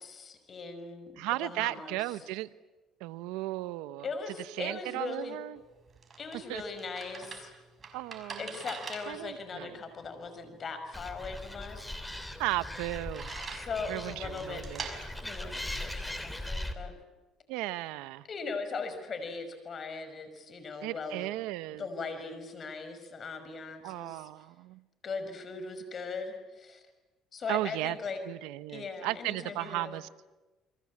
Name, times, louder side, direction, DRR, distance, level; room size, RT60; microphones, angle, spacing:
voice 1, 0.0-2.0 4.0-5.4 6.2-7.5 8.4-11.9 13.5-14.6 15.2-16.9 18.3-21.3 21.8-24.3 25.0-26.8 27.3-28.2 28.7-29.9, left 4 dB, 40° left, 9 dB, 5.9 m, -39 dB
voice 2, 1.2-2.5 3.0-4.1 4.6-5.6 6.5-6.6 7.9-8.5 9.1-9.8 12.4-13.3 13.9-14.9 17.5-18.3 20.8-21.9 23.8-24.8 27.5-28.0 28.3-30.3, right 17 dB, 90° right, 15 dB, 0.9 m, -35 dB
sound 1, 5.6-16.4, right 5 dB, 35° right, 5.7 m, -46 dB
Animal, 10.9-16.7, left 1 dB, 5° left, 3.1 m, -40 dB
29.5 x 23.0 x 8.6 m, 1.1 s
cardioid pair, 110°, 0 cm